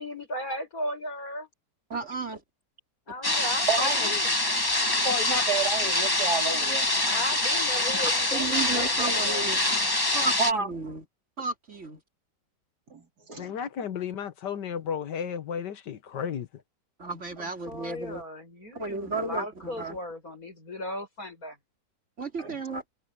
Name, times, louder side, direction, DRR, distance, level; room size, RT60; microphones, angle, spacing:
voice 1, 0.0-1.5 3.1-4.3 7.0-9.5 17.7-21.6, left 1 dB, 55° left, 8.2 m, -36 dB
voice 2, 1.9-2.4 8.3-9.6 10.1-11.0 11.4-12.0 17.0-18.2 18.8-20.0 22.2-22.8, right 3 dB, 40° right, 3.4 m, -33 dB
sound 1, 3.2-10.5, left 2 dB, 15° left, 1.3 m, -25 dB
voice 3, 3.7-4.2 5.0-6.9 10.4-10.7 12.9-13.5 17.4-17.5 22.4-22.6, right 4 dB, 65° right, 4.1 m, -30 dB
voice 4, 13.4-16.5, left 8 dB, 75° left, 1.9 m, -33 dB
omnidirectional pair, 1.8 m